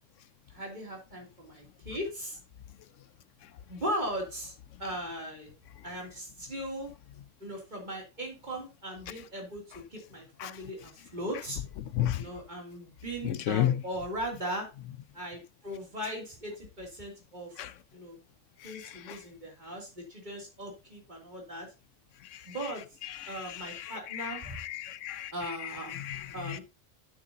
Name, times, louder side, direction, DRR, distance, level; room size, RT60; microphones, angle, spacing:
voice 1, 0.5-2.4 3.7-4.5 4.8-5.5 5.8-6.9 7.4-11.6 12.2-14.7 15.1-17.7 17.9-18.2 18.6-21.7 22.5-22.8 23.3-24.6 25.3-26.0 26.3-26.6, equal, 40° right, 3.0 m, -38 dB
voice 2, 13.2-13.7 17.6-17.7 19.1-19.2 23.2-25.3 25.9-26.6, left 12 dB, 85° left, 1.0 m, -32 dB
11.5 x 6.7 x 2.8 m
omnidirectional pair, 1.3 m